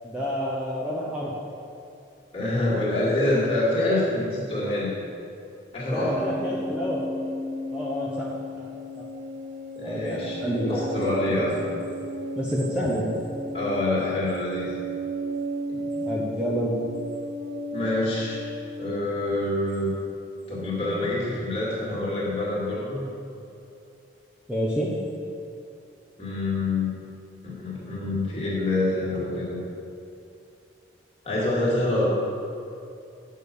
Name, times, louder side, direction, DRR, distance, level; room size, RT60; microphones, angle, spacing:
voice 1, 0.0-1.3 5.9-7.1 7.7-8.3 8.6-8.7 9.8-10.7 11.3-11.7 12.4-13.1 16.1-16.7 24.5-24.9, equal, 5° right, -6 dB, 0.9 m, -28 dB
voice 2, 2.3-5.0 5.7-6.4 9.8-11.6 13.5-14.7 15.7-15.9 17.7-18.4 18.8-19.9 20.5-23.0 26.2-27.0 27.4-29.6 31.2-32.1, left 2 dB, 30° left, -6 dB, 2.2 m, -26 dB
sound 1, 6.0-19.3, equal, 65° right, 1.4 m, -34 dB
9.1 x 6.5 x 5.3 m, 2.7 s
head